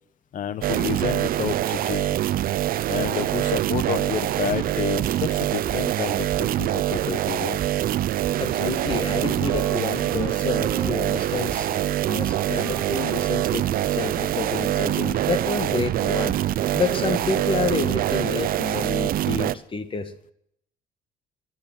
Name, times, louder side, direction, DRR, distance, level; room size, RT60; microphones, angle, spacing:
voice 1, 0.3-2.2 2.9-7.6, left 9 dB, 50° left, 15 dB, 1.2 m, -30 dB
sound 1, 0.6-19.6, right 12 dB, 60° right, 0.6 m, -24 dB
sound 2, 5.0-6.1 6.3-7.3 7.6-8.0 8.2-8.6 8.9-9.3 9.5-9.9 10.2-11.7, right 6 dB, 35° right, 2.6 m, -39 dB
voice 2, 8.4-11.7 12.1-16.4 16.7-20.1, left 4 dB, 30° left, 11 dB, 1.6 m, -29 dB
Wind instrument woodwind instrument, 8.8-17.5, right 2 dB, 5° left, 5.8 m, -40 dB
13.5 x 11.5 x 7.6 m, 0.70 s
cardioid pair, 110°, 17 cm